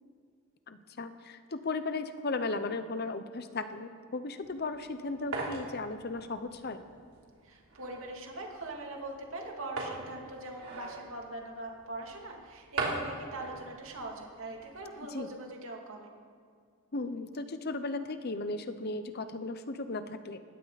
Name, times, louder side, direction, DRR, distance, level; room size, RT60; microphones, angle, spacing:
voice 1, 0.7-6.8 15.1-15.3 16.9-20.4, left 3 dB, 45° left, 10 dB, 0.8 m, -36 dB
sound 1, 4.4-14.9, right 2 dB, 90° right, 3.3 m, -42 dB
voice 2, 7.4-16.1, right 2 dB, 65° right, 0 dB, 2.6 m, -42 dB
20.0 x 17.0 x 4.1 m, 2.1 s
head